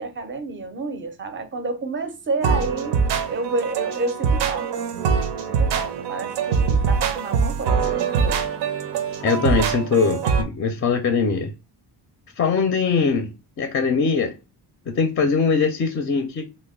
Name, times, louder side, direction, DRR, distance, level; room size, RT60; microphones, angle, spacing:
voice 1, 0.0-3.0 3.3-4.9 5.5-8.4, right 3 dB, 30° right, 0.5 m, -30 dB
sound 1, 2.4-10.4, right 6 dB, 85° right, 0.6 m, -23 dB
voice 2, 9.2-11.5 12.4-13.3 13.6-14.3 14.9-16.4, left 5 dB, 35° left, 0.4 m, -21 dB
3.1 x 2.1 x 3.5 m
cardioid pair, 125°, 41 cm